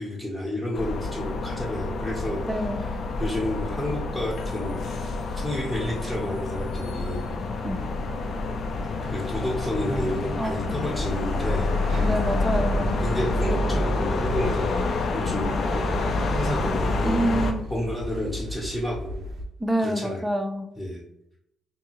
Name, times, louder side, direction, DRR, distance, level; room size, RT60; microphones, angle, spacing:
voice 1, 0.0-2.9 3.2-4.8 5.4-7.2 9.0-11.7 13.0-15.9 16.3-19.2 19.8-20.2 20.8-21.0, left 1 dB, 15° left, -5 dB, 0.7 m, -31 dB
sound 1, 0.7-17.5, left 3 dB, 60° left, 0.4 m, -27 dB
voice 2, 2.5-2.8 7.6-7.8 10.4-10.7 12.0-12.9 17.0-17.6 19.6-20.7, right 1 dB, 10° right, 6 dB, 0.4 m, -27 dB
sound 2, 11.0-19.4, right 1 dB, 70° right, 0.4 m, -36 dB
2.6 x 2.3 x 2.9 m, 0.80 s
cardioid pair, 90°, 0 cm